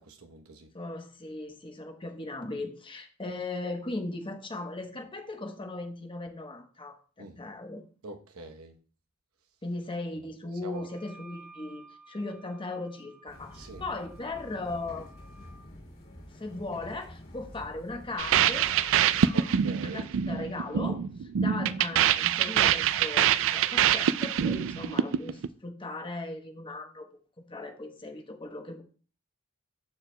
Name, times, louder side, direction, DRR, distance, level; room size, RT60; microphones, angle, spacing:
voice 1, 0.0-0.7 7.2-7.4 8.0-8.8 10.6-10.9 13.5-13.8 19.3-20.1, right 2 dB, 85° right, 0.9 m, -44 dB
voice 2, 0.7-7.8 9.6-15.1 16.3-18.7 19.2-19.5 19.8-27.0 27.5-28.8, left 2 dB, 25° left, 0.9 m, -38 dB
Wind instrument woodwind instrument, 10.7-15.7, right 3 dB, ahead, 1.3 m, -55 dB
sound 1, 13.3-19.3, left 1 dB, 45° left, 2.3 m, -48 dB
sound 2, 18.2-25.5, right 9 dB, 65° right, 0.4 m, -25 dB
13.0 x 4.7 x 2.2 m
head